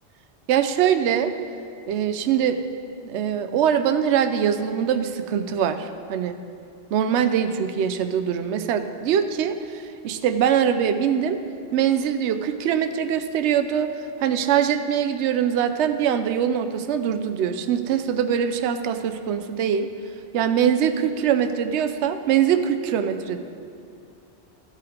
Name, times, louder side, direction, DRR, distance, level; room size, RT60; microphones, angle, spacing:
voice 1, 0.5-1.3 1.9-2.6 3.0-6.4 6.9-11.4 11.7-13.9 14.2-19.9 20.3-23.4, right 8 dB, 75° right, 8 dB, 0.9 m, -23 dB
14.5 x 5.8 x 5.1 m, 2.5 s
omnidirectional pair, 1.2 m